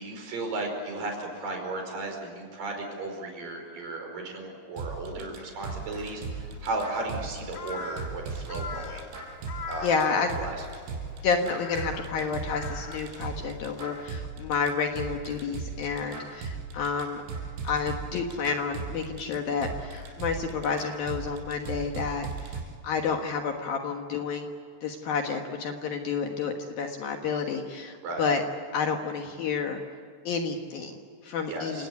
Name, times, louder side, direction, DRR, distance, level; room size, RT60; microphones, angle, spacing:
voice 1, 0.0-9.0 9.7-10.6 28.0-28.3 31.5-31.9, right 2 dB, 45° right, 3 dB, 6.4 m, -35 dB
sound 1, 4.8-22.6, right 5 dB, 80° right, 6.7 m, -37 dB
Crow, 5.6-14.1, left 6 dB, 90° left, 1.2 m, -44 dB
voice 2, 9.8-10.4 11.2-17.2 17.6-24.5 24.8-28.4 28.7-29.8 30.3-31.9, left 5 dB, 65° left, 3 dB, 2.6 m, -30 dB
29.5 x 18.0 x 8.5 m, 2.2 s
omnidirectional pair, 5.7 m